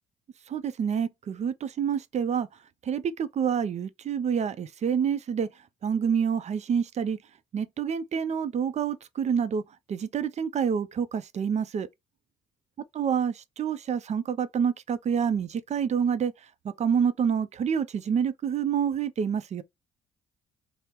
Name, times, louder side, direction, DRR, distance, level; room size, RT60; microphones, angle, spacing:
voice 1, 0.5-2.5 2.9-5.5 5.8-7.2 7.5-9.6 9.9-11.9 13.0-16.3 16.8-19.6, right 7 dB, 45° right, 0.5 m, -27 dB
2.8 x 2.1 x 3.5 m
supercardioid pair, 60°, 16 cm